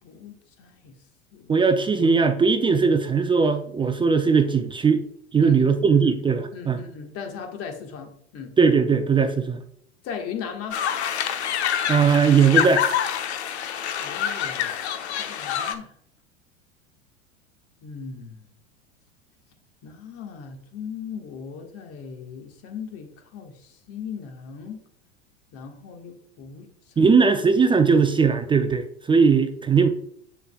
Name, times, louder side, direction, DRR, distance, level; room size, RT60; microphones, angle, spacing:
voice 1, 0.0-1.0 1.3-1.5 5.4-5.6 5.9-6.1 6.5-8.5 10.0-10.8 14.0-14.8 15.2-15.9 17.8-18.4 19.8-24.8 25.5-27.2, left 6 dB, 45° left, 4 dB, 1.6 m, -38 dB
voice 2, 1.5-5.0 5.3-6.8 8.6-9.6 11.9-12.8 27.0-29.9, right 5 dB, 15° right, 8 dB, 0.5 m, -19 dB
sound 1, 10.7-15.7, left 9 dB, 70° left, 0.9 m, -26 dB
8.5 x 6.7 x 2.3 m, 0.66 s
hypercardioid pair, 85°, 34 cm